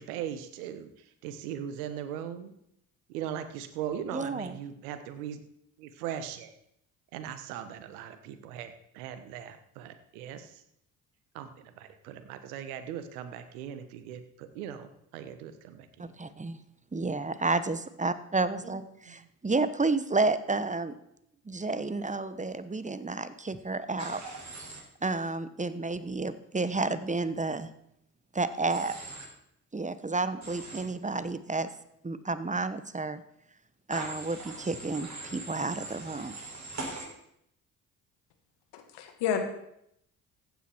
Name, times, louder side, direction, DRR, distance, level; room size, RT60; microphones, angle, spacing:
voice 1, 0.0-2.5 3.1-5.4 5.8-6.5 7.1-10.6 11.3-15.9 18.6-18.8 19.1-19.2, right 9 dB, 85° right, 10 dB, 1.2 m, -39 dB
voice 2, 4.1-4.6 16.0-16.6 16.9-20.9 21.5-24.2 25.0-27.7 28.3-28.9 29.7-31.7 32.0-33.2 33.9-36.4, right 3 dB, 15° right, 13 dB, 1.1 m, -31 dB
Human voice / Train, 24.0-24.8 28.7-29.3 30.4-30.8 33.9-37.0, right 2 dB, 40° right, 6.2 m, -41 dB
voice 3, 38.7-39.4, left 8 dB, 70° left, 6 dB, 2.1 m, -30 dB
15.0 x 9.3 x 4.5 m, 0.76 s
hypercardioid pair, 50°, 43 cm